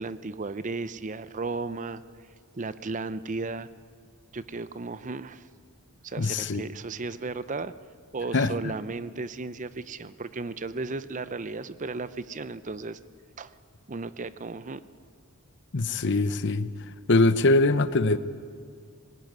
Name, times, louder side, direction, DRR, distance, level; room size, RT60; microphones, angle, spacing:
voice 1, 0.0-2.0 2.5-3.7 4.3-5.5 6.0-7.7 8.1-13.0 13.4-13.5 13.9-14.8, right 3 dB, 35° right, 14 dB, 0.6 m, -35 dB
voice 2, 6.2-6.6 8.3-8.7 15.7-16.7 17.1-18.2, left 2 dB, 55° left, 12 dB, 0.8 m, -22 dB
20.0 x 18.5 x 9.4 m, 2.1 s
head